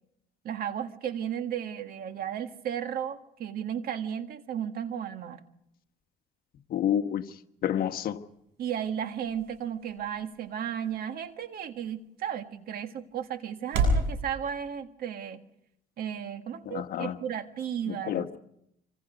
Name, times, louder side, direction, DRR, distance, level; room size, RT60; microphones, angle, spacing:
voice 1, 0.4-5.4 8.6-15.4 16.0-18.4, right 9 dB, 60° right, 8 dB, 1.7 m, -34 dB
voice 2, 6.7-7.2 7.6-8.2 16.7-17.2 17.9-18.4, left 10 dB, 60° left, 8 dB, 1.3 m, -29 dB
sound 1, 7.8-14.1, right 1 dB, 85° right, 7.7 m, -34 dB
26.0 x 25.5 x 5.2 m, 0.79 s
cardioid pair, 110°, 17 cm